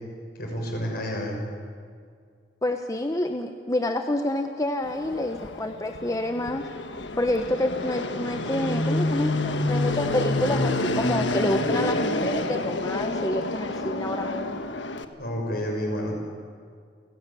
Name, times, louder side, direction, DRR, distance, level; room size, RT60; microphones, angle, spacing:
voice 1, 0.3-1.4 15.2-16.2, equal, 60° left, 1 dB, 6.4 m, -29 dB
voice 2, 2.6-6.6 7.2-14.7, left 1 dB, 20° left, 5 dB, 1.0 m, -28 dB
Fixed-wing aircraft airplane, 4.8-15.0, left 2 dB, 90° left, 1.4 m, -28 dB
29.5 x 16.5 x 8.5 m, 2.2 s
head